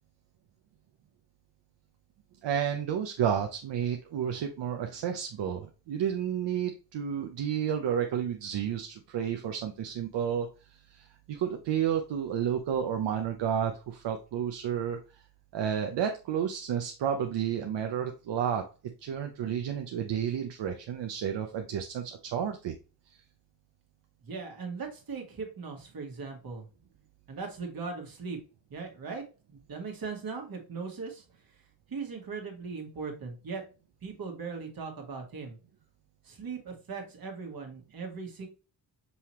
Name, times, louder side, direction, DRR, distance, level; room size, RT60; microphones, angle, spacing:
voice 1, 2.4-15.0 15.5-18.6 19.0-22.7 23.1-23.2, right 8 dB, 75° right, 4 dB, 0.7 m, -31 dB
voice 2, 24.2-26.7 27.3-28.4 28.7-29.2 29.5-31.2 31.9-33.6 34.0-35.6 36.2-38.5, right 4 dB, 55° right, 2 dB, 1.6 m, -39 dB
5.5 x 2.9 x 3.0 m, 0.33 s
cardioid pair, 100°, 43 cm